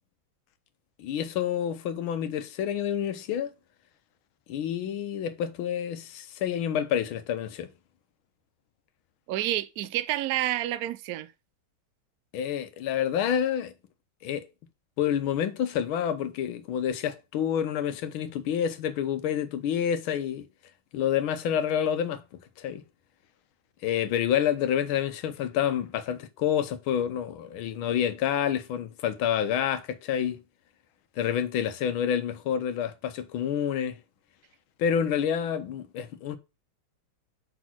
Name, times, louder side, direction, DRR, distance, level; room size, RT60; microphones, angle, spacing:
voice 1, 1.0-3.5 4.5-7.7 12.3-13.7 14.2-14.5 15.0-20.5 20.9-22.2 22.6-22.8 23.8-30.4 31.2-34.0 34.8-36.4, left 9 dB, 90° left, 1.6 m, -28 dB
voice 2, 9.3-11.3, right 14 dB, 80° right, 0.8 m, -29 dB
5.8 x 4.2 x 6.0 m
omnidirectional pair, 2.2 m